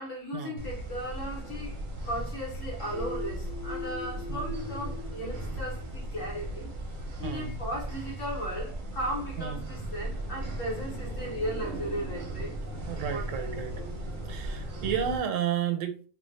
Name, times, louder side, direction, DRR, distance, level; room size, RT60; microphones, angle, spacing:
voice 1, 0.0-1.8 2.0-6.7 7.0-12.6 13.1-14.0, equal, 85° left, 1.7 m, -36 dB
sound 1, 0.6-15.2, right 1 dB, 50° right, 0.6 m, -37 dB
sound 2, 2.9-6.6, left 5 dB, 25° left, 0.7 m, -42 dB
voice 2, 7.2-7.6 9.4-9.6 12.9-13.8 14.3-16.1, right 8 dB, 85° right, 1.0 m, -32 dB
3.1 x 2.3 x 3.2 m
omnidirectional pair, 1.3 m